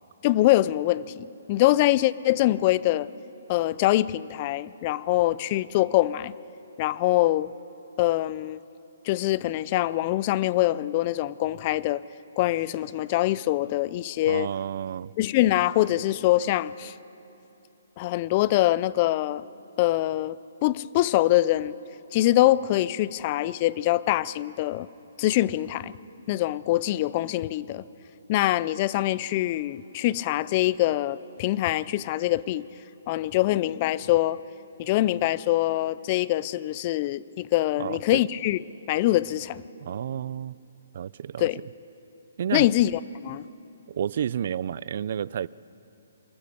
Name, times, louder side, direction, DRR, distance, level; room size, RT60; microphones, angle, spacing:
voice 1, 0.2-3.1 3.5-6.3 6.8-7.5 8.0-8.6 9.1-12.0 12.4-14.5 15.2-16.9 18.0-19.4 19.8-20.4 20.6-21.7 22.1-24.9 25.2-25.9 26.3-27.8 28.3-32.7 33.1-34.4 34.8-38.6 38.9-39.6 41.4-41.6 42.5-43.5, left 15 dB, 30° left, 19 dB, 0.4 m, -24 dB
voice 2, 14.2-15.1 37.8-38.2 39.8-40.6 40.9-41.5 42.4-42.7 43.9-45.5, right 9 dB, 50° right, 22 dB, 0.4 m, -30 dB
27.5 x 13.5 x 6.9 m, 2.9 s
hypercardioid pair, 160°, 0 cm